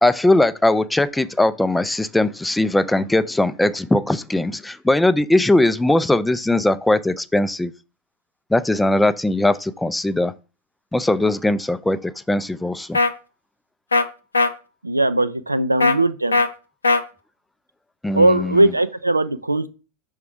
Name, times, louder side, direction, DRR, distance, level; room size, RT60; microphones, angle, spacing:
voice 1, 0.0-7.7 8.5-10.3 10.9-13.0 18.0-18.6, left 1 dB, 5° left, 0.3 m, -19 dB
sound 1, 12.9-13.1 13.9-14.0 14.3-14.5 15.8-16.0 16.3-16.5 16.8-17.0, left 3 dB, 75° left, 0.5 m, -17 dB
voice 2, 14.8-16.4 18.1-19.7, right 1 dB, 85° right, 0.4 m, -19 dB
5.8 x 3.6 x 4.8 m
figure-of-eight pair, 90°, 0 cm